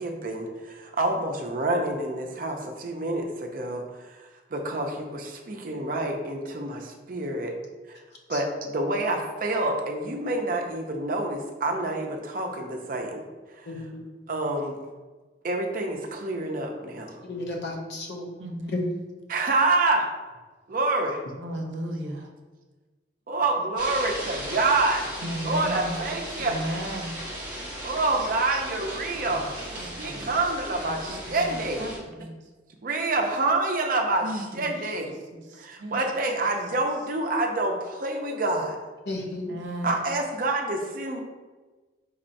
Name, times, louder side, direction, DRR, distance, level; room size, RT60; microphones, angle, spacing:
voice 1, 0.0-4.2 4.5-7.6 7.9-8.0 8.3-13.2 13.6-13.8 14.3-14.8 15.4-17.2 19.3-20.1 20.7-21.2 23.3-25.1 25.4-26.7 27.8-31.8 32.8-35.1 35.6-38.8 39.8-41.2, right 2 dB, 45° right, 3 dB, 0.5 m, -27 dB
voice 2, 13.7-14.0 17.3-18.3 18.7-18.8 39.1-39.5, left 2 dB, 65° left, 1 dB, 0.8 m, -33 dB
voice 3, 18.4-18.9 21.4-22.3 25.2-26.0 26.3-27.2 29.3-29.5 29.8-30.4 30.8-32.4 34.2-36.0 39.3-40.0, right 1 dB, 85° right, 3 dB, 0.7 m, -35 dB
sound 1, 23.8-32.0, right 1 dB, 25° right, 1.5 m, -37 dB
4.3 x 4.1 x 2.6 m, 1.3 s
head